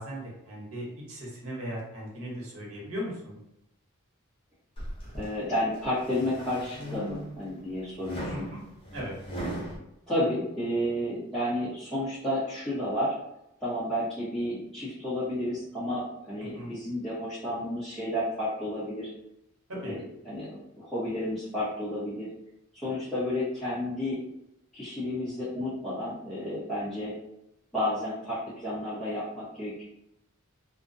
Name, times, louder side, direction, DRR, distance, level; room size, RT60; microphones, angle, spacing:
voice 1, 0.0-3.4 8.3-8.6 8.9-9.1 16.5-16.7 19.7-20.0, equal, 75° right, -3 dB, 0.9 m, -38 dB
sound 1, 4.8-5.3 5.8-7.5 8.0-9.8, right 1 dB, 25° left, 0.7 m, -38 dB
voice 2, 5.2-8.4 10.1-13.1 13.6-19.1 19.8-20.0 20.2-22.3 22.8-24.2 24.7-27.1 27.7-29.8, left 1 dB, ahead, -16 dB, 0.9 m, -31 dB
2.4 x 2.1 x 2.6 m, 0.83 s
head